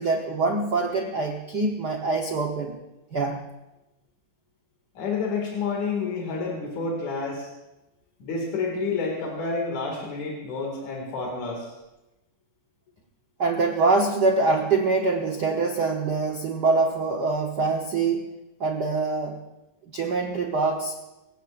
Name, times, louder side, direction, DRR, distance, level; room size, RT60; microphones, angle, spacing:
voice 1, 0.0-2.8 3.1-3.5 13.4-18.3 18.6-19.4 19.9-20.9, right 3 dB, 85° right, 2 dB, 0.9 m, -24 dB
voice 2, 5.0-7.5 8.2-11.7, left 4 dB, 70° left, -1 dB, 3.6 m, -29 dB
24.5 x 16.5 x 2.5 m, 0.98 s
omnidirectional pair, 3.6 m